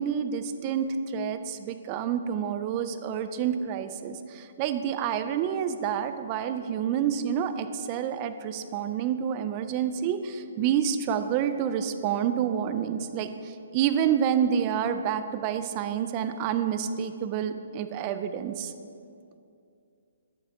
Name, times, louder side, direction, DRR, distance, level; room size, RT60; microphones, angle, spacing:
voice 1, 0.0-18.7, right 8 dB, 30° right, 10 dB, 0.4 m, -28 dB
11.0 x 7.1 x 3.6 m, 2.5 s
hypercardioid pair, 155°, 0 cm